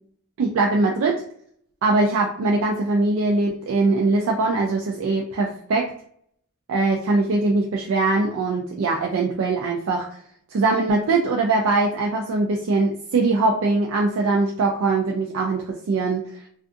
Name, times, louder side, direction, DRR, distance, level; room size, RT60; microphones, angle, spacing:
voice 1, 0.4-1.2 1.8-5.8 6.7-10.1 10.5-16.5, right 3 dB, 65° right, 0 dB, 0.4 m, -22 dB
2.5 x 2.4 x 2.4 m, 0.63 s
head